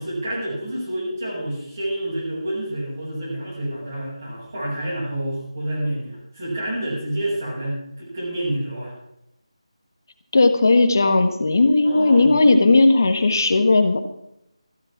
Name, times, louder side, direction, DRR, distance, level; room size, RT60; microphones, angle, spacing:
voice 1, 0.0-8.9 11.8-12.3, right 1 dB, 30° right, -7 dB, 6.0 m, -28 dB
voice 2, 10.3-14.0, left 3 dB, 35° left, 7 dB, 1.4 m, -16 dB
15.0 x 9.8 x 5.9 m, 0.80 s
figure-of-eight pair, 180°, 3 cm